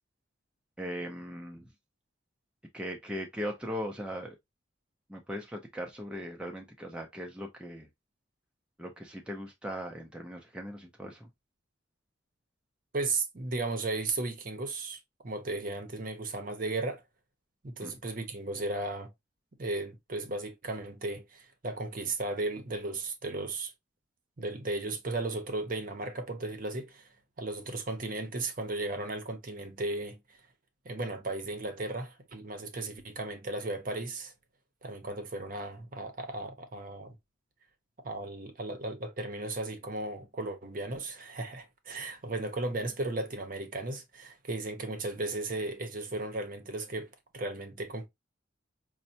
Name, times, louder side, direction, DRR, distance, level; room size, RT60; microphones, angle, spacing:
voice 1, 0.8-1.7 2.7-4.4 5.1-7.9 8.8-11.3 17.8-18.0, equal, 5° right, 0.5 m, -39 dB
voice 2, 12.9-15.0 15.2-17.0 17.6-19.1 19.6-23.7 24.4-27.1 27.4-30.2 30.8-34.3 34.8-37.2 38.0-48.1, right 2 dB, 45° right, 0.7 m, -35 dB
5.2 x 2.1 x 2.7 m
head